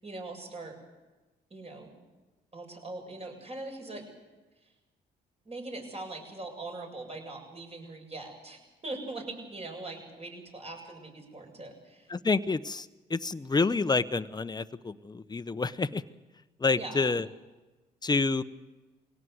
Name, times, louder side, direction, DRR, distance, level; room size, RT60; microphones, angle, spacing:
voice 1, 0.0-0.8 1.5-2.0 2.5-4.1 4.6-4.7 5.4-12.1 16.7-17.1, right 2 dB, 35° right, 3 dB, 7.8 m, -41 dB
voice 2, 12.1-16.0 16.6-17.2 18.0-18.4, left 3 dB, 20° left, 13 dB, 1.0 m, -28 dB
23.5 x 17.5 x 8.0 m, 1.2 s
supercardioid pair, 65°, 18 cm